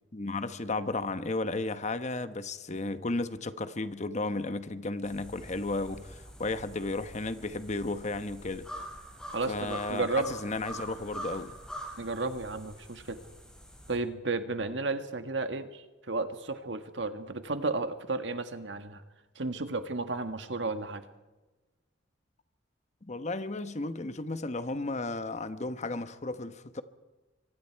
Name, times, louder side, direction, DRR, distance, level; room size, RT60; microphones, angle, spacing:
voice 1, 0.1-8.7 9.5-11.5 23.0-26.8, left 2 dB, 40° left, 1.1 m, -34 dB
sound 1, 5.0-14.0, equal, 5° left, 5.6 m, -45 dB
voice 2, 9.3-10.3 12.0-13.2 13.9-19.0 19.3-21.0, right 3 dB, 70° right, 1.7 m, -33 dB
26.5 x 24.0 x 4.7 m
head